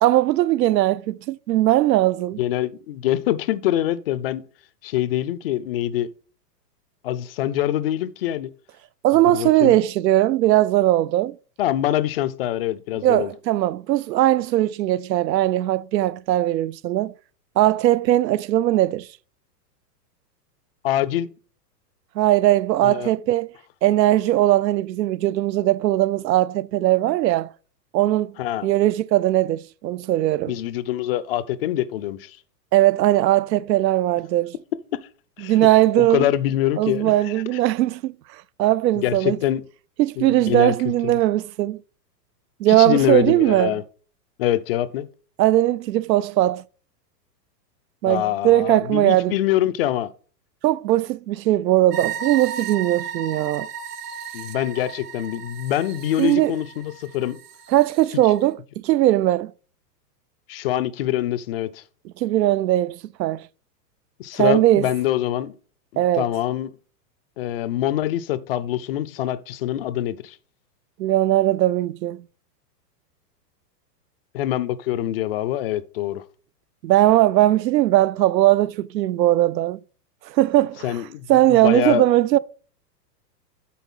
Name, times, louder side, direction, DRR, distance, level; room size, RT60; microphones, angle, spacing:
voice 1, 0.0-2.4 9.0-11.4 13.0-17.1 17.6-19.1 22.2-23.5 23.8-27.5 27.9-28.3 28.6-30.5 32.7-34.5 35.4-36.3 36.8-38.1 38.6-39.4 40.0-41.8 42.6-43.7 45.4-46.6 48.0-49.3 50.6-53.7 56.2-56.5 57.7-59.5 62.2-63.4 64.4-64.9 66.0-66.3 71.0-72.2 76.8-79.8 80.3-81.0 81.3-82.4, right 15 dB, 85° right, 0.6 m, -19 dB
voice 2, 2.4-4.4 4.8-6.1 7.0-8.5 9.3-9.8 11.6-13.3 20.8-21.3 22.8-23.1 28.4-28.7 30.5-32.4 34.9-35.0 35.4-35.7 36.0-37.6 39.0-39.6 40.2-40.9 42.7-43.8 44.4-45.1 48.0-50.1 54.3-57.4 60.5-61.8 64.2-65.5 65.9-66.7 67.4-70.4 74.3-76.2 80.8-82.0, left 12 dB, 40° left, 0.4 m, -24 dB
sound 1, 51.9-58.1, right 7 dB, 70° right, 1.4 m, -35 dB
8.4 x 3.8 x 5.4 m
hypercardioid pair, 140°, 49 cm